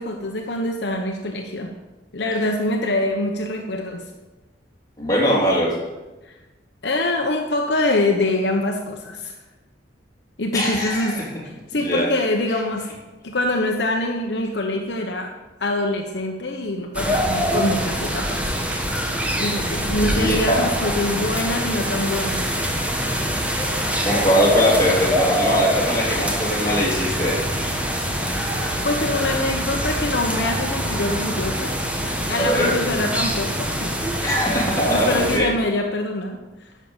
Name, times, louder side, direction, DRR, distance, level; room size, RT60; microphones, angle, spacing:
voice 1, 0.0-1.7 2.1-4.1 6.2-6.4 6.8-9.4 10.4-11.3 11.7-12.9 13.2-15.3 15.6-18.6 19.3-22.4 28.8-31.8 32.3-33.9 34.9-36.7, left 2 dB, 65° left, 2 dB, 1.0 m, -24 dB
voice 2, 5.0-5.7 10.5-11.2 11.8-12.1 20.0-20.4 21.1-21.2 24.0-27.4 32.4-32.7 34.2-35.5, equal, 20° left, -6 dB, 3.4 m, -21 dB
sound 1, 16.9-35.4, equal, 5° right, 1.2 m, -24 dB
11.0 x 6.4 x 7.3 m, 1.1 s
head